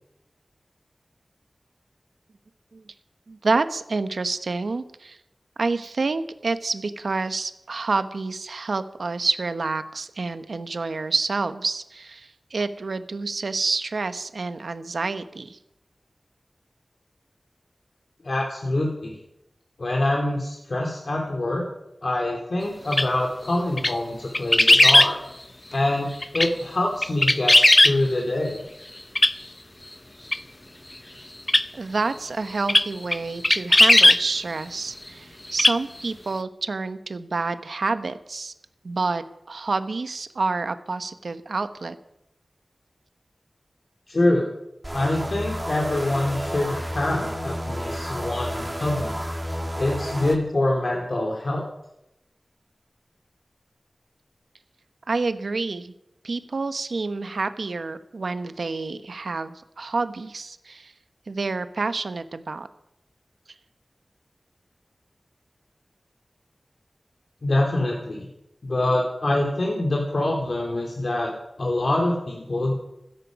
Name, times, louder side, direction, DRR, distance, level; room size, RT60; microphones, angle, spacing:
voice 1, 3.3-5.2 5.6-15.6 31.7-38.5 38.8-42.0 55.1-55.9 56.2-60.9 61.3-62.7, right 3 dB, 85° right, 11 dB, 1.0 m, -28 dB
voice 2, 18.2-19.2 19.8-21.6 22.0-25.2 25.7-27.5 27.8-28.6 44.1-44.5 44.9-49.2 49.8-51.6 67.4-68.3 68.6-71.3 71.6-72.7, left 1 dB, 60° left, 0 dB, 2.7 m, -25 dB
sound 1, 22.9-23.1 23.8-23.9 24.3-25.1 26.2-26.5 27.0-27.9 29.1-29.3 30.3-30.4 31.5-31.6 32.7-32.8 33.1-33.2 33.4-34.2 35.5-35.8 36.0-36.1, left 1 dB, 25° left, 0.7 m, -16 dB
sound 2, 44.8-50.4, equal, 15° right, 2.6 m, -31 dB
15.0 x 14.0 x 5.3 m, 0.88 s
wide cardioid pair, 75°, 0 cm